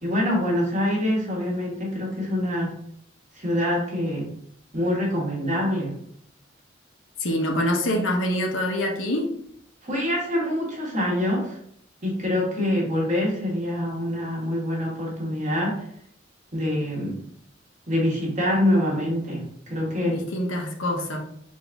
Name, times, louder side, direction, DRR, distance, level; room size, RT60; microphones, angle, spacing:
voice 1, 0.0-2.7 3.3-4.3 4.7-6.0 9.8-11.6 12.0-15.8 16.5-17.2 17.9-20.2, left 1 dB, 40° right, -3 dB, 1.4 m, -25 dB
voice 2, 7.2-9.3 20.0-21.2, left 1 dB, 85° left, 2 dB, 0.8 m, -25 dB
4.0 x 2.6 x 3.4 m, 0.69 s
head